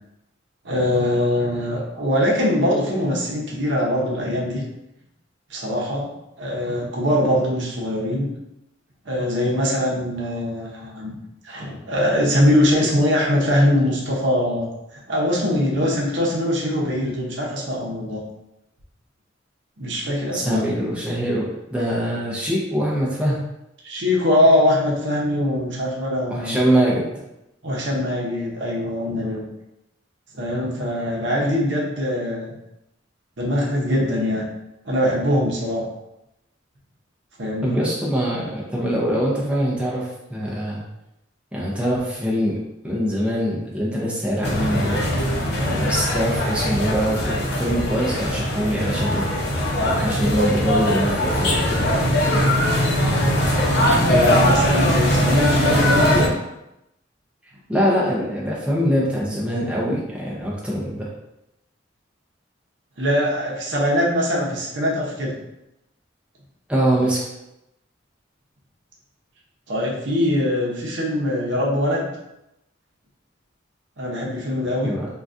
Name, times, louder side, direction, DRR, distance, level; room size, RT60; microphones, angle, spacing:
voice 1, 0.6-4.6 5.5-6.1 6.4-8.3 9.0-11.1 11.4-18.2 19.8-20.6 23.8-26.6 27.6-29.4 30.3-32.5 33.4-34.4 34.8-35.9 37.4-37.8 54.0-56.3 63.0-65.3 69.7-72.1 74.0-74.9, left 1 dB, 65° right, -3 dB, 0.8 m, -22 dB
voice 2, 20.3-23.4 26.3-27.0 37.6-40.8 41.5-42.6 42.8-45.0 45.7-49.3 49.8-51.8 57.7-61.1 66.7-67.2 74.8-75.1, equal, 5° right, -6 dB, 0.5 m, -23 dB
sound 1, 44.4-56.3, equal, 60° left, 0.7 m, -20 dB
3.8 x 2.3 x 2.5 m, 0.87 s
head